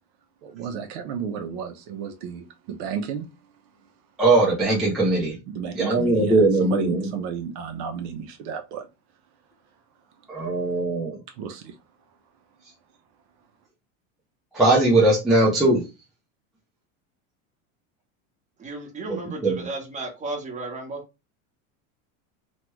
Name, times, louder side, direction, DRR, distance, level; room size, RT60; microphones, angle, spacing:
voice 1, 0.4-3.3 5.5-8.8 11.4-11.7, right 7 dB, 55° right, 0.6 m, -32 dB
voice 2, 4.2-5.4 5.7-7.1 10.3-11.2 14.5-15.8 19.1-19.2 19.4-19.6, right 2 dB, ahead, 0.3 m, -20 dB
voice 3, 18.6-21.0, right 2 dB, 20° right, 1.0 m, -34 dB
3.1 x 2.2 x 3.0 m
supercardioid pair, 150°, 39 cm